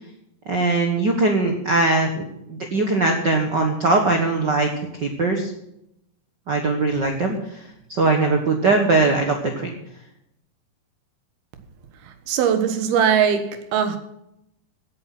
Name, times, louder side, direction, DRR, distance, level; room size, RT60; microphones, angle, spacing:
voice 1, 0.5-2.2 2.5-4.7 5.0-5.5 6.5-7.4 7.9-9.7, right 3 dB, 65° right, 1.1 m, -20 dB
voice 2, 12.3-14.0, right 8 dB, 85° right, 3.3 m, -20 dB
16.0 x 8.9 x 5.9 m
omnidirectional pair, 4.3 m